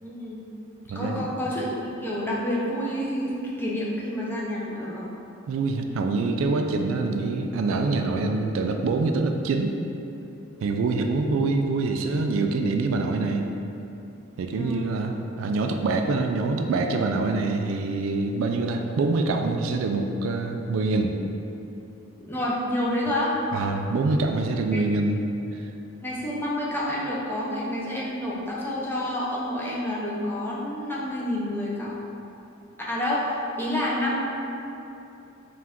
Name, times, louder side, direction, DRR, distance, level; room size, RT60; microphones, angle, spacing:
voice 1, 0.0-0.4 0.9-3.3 3.6-5.1 14.5-15.0 22.3-23.3 24.7-24.8 26.0-31.9 32.8-33.3 33.6-34.2, left 1 dB, 10° left, -6 dB, 0.6 m, -28 dB
voice 2, 0.9-1.3 5.5-9.7 10.6-13.4 14.4-21.1 23.5-25.2 25.5-25.6, right 3 dB, 75° right, 5 dB, 0.3 m, -25 dB
4.6 x 2.4 x 3.5 m, 2.8 s
head